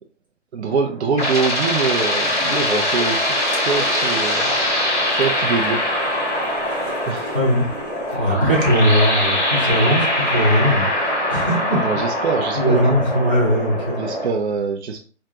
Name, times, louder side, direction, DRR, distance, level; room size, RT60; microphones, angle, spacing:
voice 1, 0.5-4.6 5.1-6.0 6.7-7.4 8.1-8.3 11.8-12.9 14.0-15.1, right 5 dB, 60° right, 3 dB, 0.5 m, -24 dB
sound 1, 0.7-14.3, left 1 dB, 10° left, 1.4 m, -22 dB
sound 2, 2.2-8.2, left 2 dB, 40° left, 1.4 m, -36 dB
voice 2, 7.3-7.7 8.1-10.8 11.3-11.8 12.5-14.0, equal, 10° right, -11 dB, 0.4 m, -19 dB
3.5 x 2.1 x 2.7 m, 0.37 s
hypercardioid pair, 150°, 37 cm